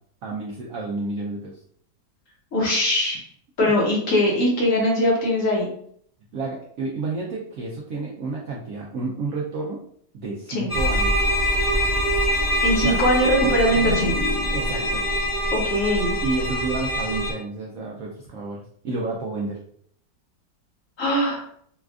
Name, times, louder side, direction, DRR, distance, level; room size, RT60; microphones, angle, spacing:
voice 1, 0.2-1.6 3.6-3.7 6.3-9.8 10.1-11.2 12.8-13.0 13.4-13.5 14.5-15.0 16.2-19.6, right 3 dB, 75° right, -2 dB, 0.8 m, -30 dB
voice 2, 2.5-3.2 3.6-5.7 10.5-10.7 12.6-14.2 15.5-16.2 21.0-21.4, equal, 55° left, -2 dB, 1.1 m, -21 dB
sound 1, 10.7-17.3, equal, 20° left, 0.8 m, -23 dB
sound 2, 13.2-16.9, left 3 dB, 80° left, 0.7 m, -35 dB
4.2 x 2.4 x 2.3 m, 0.64 s
omnidirectional pair, 1.9 m